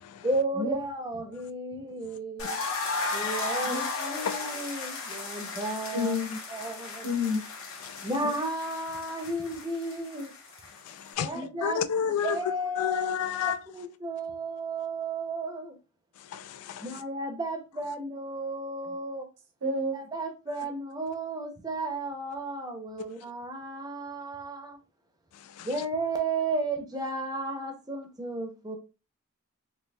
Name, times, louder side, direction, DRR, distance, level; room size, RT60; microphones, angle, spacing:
voice 1, 0.2-2.6 3.1-6.2 6.5-7.1 8.0-10.3 11.2-11.8 12.2-15.8 16.8-19.3 19.9-24.8 25.6-28.8, right 2 dB, 15° right, 0.6 m, -33 dB
sound 1, 2.4-11.1, left 3 dB, 60° left, 1.0 m, -35 dB
voice 2, 5.9-6.4 7.0-7.4 11.3-11.7 19.6-20.0, left 2 dB, 90° right, 1.0 m, -29 dB
voice 3, 10.9-11.3 11.6-12.4 12.8-13.6 16.3-16.9 25.6-25.7, left 8 dB, 80° left, 0.3 m, -31 dB
4.1 x 2.7 x 2.2 m
head